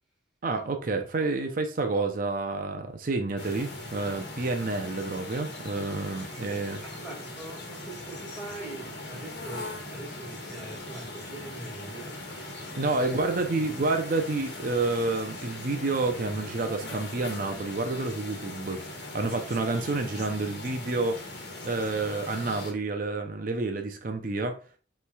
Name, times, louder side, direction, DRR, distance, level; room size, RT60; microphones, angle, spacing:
voice 1, 0.4-6.8 12.8-18.8 19.1-21.3 21.6-24.6, right 3 dB, 50° right, 0.5 m, -29 dB
sound 1, 3.4-22.7, left 2 dB, 65° left, 1.3 m, -40 dB
voice 2, 6.8-12.2 13.0-13.3, right 1 dB, ahead, 1.7 m, -42 dB
5.6 x 3.2 x 2.3 m
head